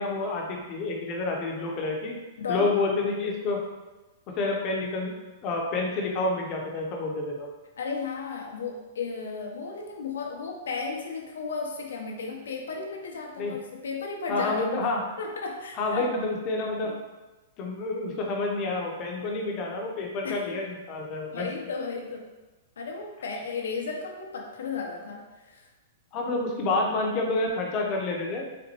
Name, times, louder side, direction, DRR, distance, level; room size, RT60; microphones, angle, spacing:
voice 1, 0.0-2.2 2.5-3.6 4.3-5.1 5.4-7.5 13.4-13.5 14.3-15.0 15.8-16.9 17.6-21.5 26.1-28.5, left 3 dB, 35° left, 0 dB, 0.7 m, -28 dB
voice 2, 2.4-2.7 7.8-14.8 15.2-16.1 16.8-16.9 20.2-20.6 21.3-22.3 22.8-25.7, left 4 dB, 80° left, 1 dB, 0.6 m, -34 dB
4.1 x 2.2 x 2.9 m, 1.1 s
hypercardioid pair, 130°, 0 cm